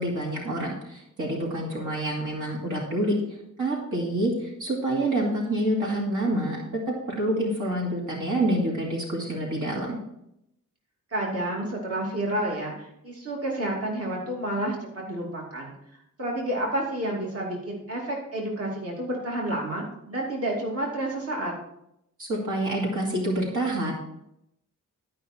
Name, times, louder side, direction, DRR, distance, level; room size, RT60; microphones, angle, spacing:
voice 1, 0.0-3.1 3.6-10.0 22.2-23.9, right 1 dB, 70° right, -2 dB, 2.6 m, -27 dB
voice 2, 11.1-15.7 16.2-21.5, right 1 dB, 45° right, -2 dB, 2.6 m, -30 dB
12.5 x 5.6 x 4.4 m, 0.80 s
wide cardioid pair, 100°, 32 cm